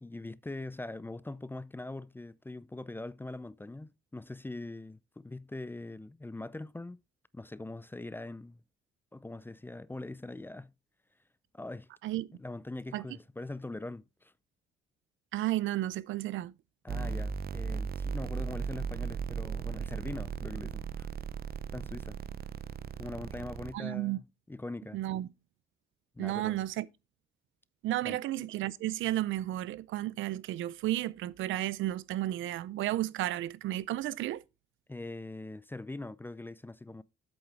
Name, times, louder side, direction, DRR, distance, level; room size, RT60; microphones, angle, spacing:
voice 1, 0.0-7.0 7.3-8.6 9.1-10.7 11.5-11.9 12.4-14.3 16.8-21.1 21.7-22.2 23.0-25.0 26.1-26.6 28.0-28.2 34.9-37.0, left 2 dB, 10° left, 0.4 m, -42 dB
voice 2, 15.3-16.5 23.7-24.2 24.9-25.3 26.2-26.9 27.8-34.4, right 14 dB, 80° right, 0.6 m, -33 dB
sound 1, 16.9-23.7, right 6 dB, 50° right, 0.9 m, -37 dB
8.1 x 7.1 x 4.2 m
cardioid pair, 90°, 20 cm